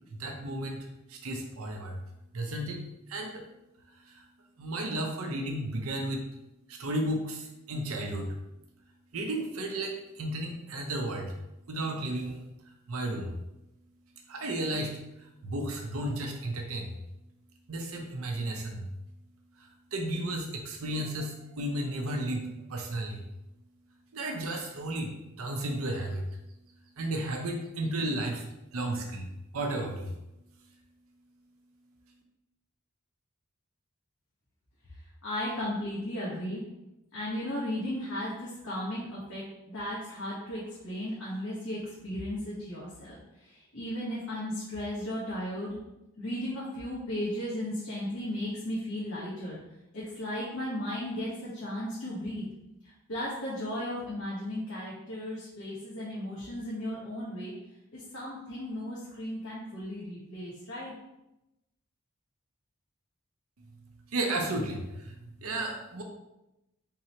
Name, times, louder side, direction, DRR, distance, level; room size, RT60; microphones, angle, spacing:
voice 1, 0.1-2.0 2.3-2.8 3.1-3.5 4.1-4.2 4.6-6.2 6.7-8.3 9.1-11.3 11.7-12.4 12.9-13.3 14.3-15.0 15.4-17.0 17.7-18.9 19.6-23.2 24.1-26.3 27.0-29.3 29.5-30.1 64.1-66.0, right 1 dB, 90° right, 2 dB, 0.7 m, -33 dB
voice 2, 35.2-36.6 37.1-39.4 39.7-45.8 46.2-49.6 49.9-52.4 52.8-57.5 57.9-60.9, left 1 dB, 75° left, -7 dB, 1.2 m, -35 dB
3.7 x 2.9 x 4.3 m, 0.91 s
head